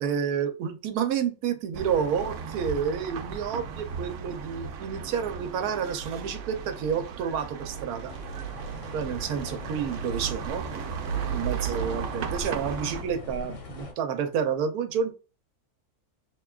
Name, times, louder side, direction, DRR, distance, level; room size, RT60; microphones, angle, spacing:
voice 1, 0.0-8.1 8.9-10.6 11.3-15.1, right 7 dB, 85° right, 8 dB, 1.1 m, -29 dB
sound 1, 1.7-13.0, right 7 dB, 65° right, 0.8 m, -35 dB
sound 2, 8.1-13.9, left 3 dB, 85° left, 1.6 m, -41 dB
6.0 x 2.2 x 2.3 m, 0.32 s
omnidirectional pair, 1.6 m